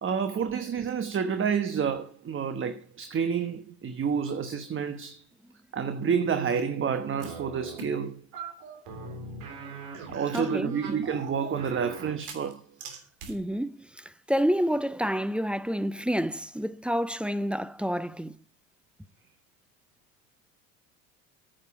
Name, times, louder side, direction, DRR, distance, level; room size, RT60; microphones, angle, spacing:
voice 1, 0.0-5.2 5.7-8.2 10.1-12.6, right 6 dB, 30° right, 1.1 m, -29 dB
sound 1, 7.2-7.9 8.3-12.5 12.8-13.3, right 4 dB, 70° right, 3.3 m, -41 dB
voice 2, 10.3-10.7 13.3-18.3, equal, 5° right, 0.5 m, -29 dB
9.6 x 7.6 x 6.8 m
hypercardioid pair, 80°, 39 cm